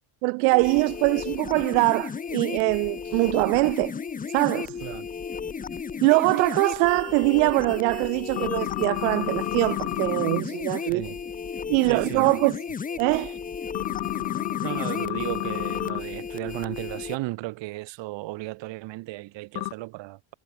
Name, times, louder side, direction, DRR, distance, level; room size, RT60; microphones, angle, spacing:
voice 1, 0.2-4.0 4.3-4.8 6.0-11.0 11.7-12.6 13.0-13.4, right 40 dB or more, 85° right, 0.6 m, -23 dB
sound 1, 0.5-17.2, left 6 dB, 15° left, 1.2 m, -34 dB
sound 2, 8.4-10.4 13.7-16.0 19.6-19.7, left 22 dB, 60° left, 1.6 m, -30 dB
voice 2, 10.8-11.2 11.9-12.4 14.6-20.3, right 19 dB, 60° right, 5.5 m, -35 dB
cardioid pair, 145°, 49 cm